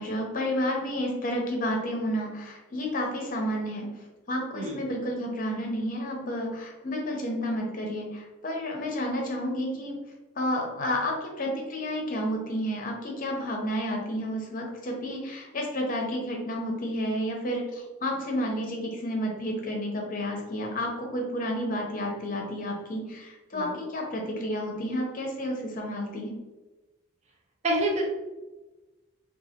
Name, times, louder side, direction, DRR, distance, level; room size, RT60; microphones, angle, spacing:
voice 1, 0.0-3.9 4.3-10.0 10.3-26.4, equal, 40° left, 1 dB, 0.7 m, -31 dB
voice 2, 27.6-28.0, right 1 dB, 30° right, -1 dB, 0.5 m, -27 dB
3.9 x 2.4 x 2.8 m, 1.1 s
head